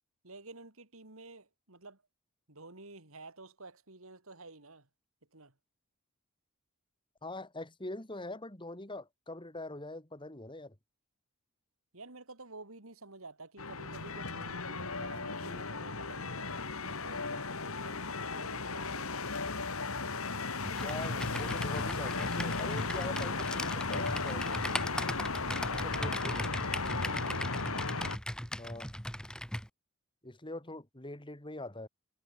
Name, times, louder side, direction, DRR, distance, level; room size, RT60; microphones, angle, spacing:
voice 1, 0.2-2.0 2.5-4.9 5.3-5.5 11.9-19.1 25.9-28.1, right 3 dB, 65° right, 3.3 m, -51 dB
voice 2, 7.2-10.7 20.7-24.7 25.7-26.5 28.6-28.9 30.2-31.9, left 2 dB, 20° left, 2.9 m, -43 dB
sound 1, 13.6-28.2, left 4 dB, 70° left, 2.7 m, -35 dB
Computer keyboard, 20.6-29.7, left 1 dB, 5° left, 2.6 m, -39 dB
head